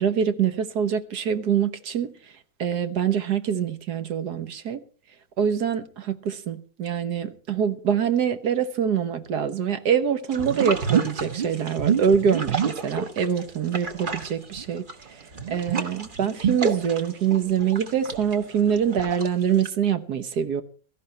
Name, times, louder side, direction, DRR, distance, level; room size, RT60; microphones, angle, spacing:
voice 1, 0.0-2.1 2.6-4.8 5.4-14.9 15.5-20.6, right 8 dB, 70° right, 1.7 m, -24 dB
sound 1, 10.3-13.4 13.7-19.7, right 6 dB, 30° right, 1.3 m, -28 dB
17.0 x 14.0 x 4.2 m
omnidirectional pair, 1.8 m